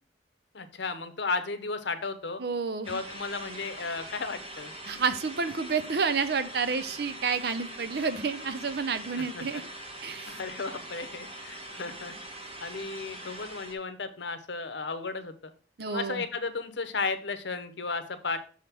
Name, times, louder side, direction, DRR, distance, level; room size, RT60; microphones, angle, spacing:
voice 1, 0.5-2.4 2.9-4.7 9.2-9.6 10.3-12.1 12.6-15.5 15.9-18.4, left 4 dB, 70° left, 10 dB, 0.9 m, -34 dB
voice 2, 2.4-3.0 4.9-9.6 10.0-10.4 15.8-16.2, right 5 dB, 60° right, 12 dB, 0.6 m, -30 dB
sound 1, 2.8-13.7, right 1 dB, 30° right, 1.3 m, -43 dB
6.4 x 3.6 x 5.9 m, 0.39 s
head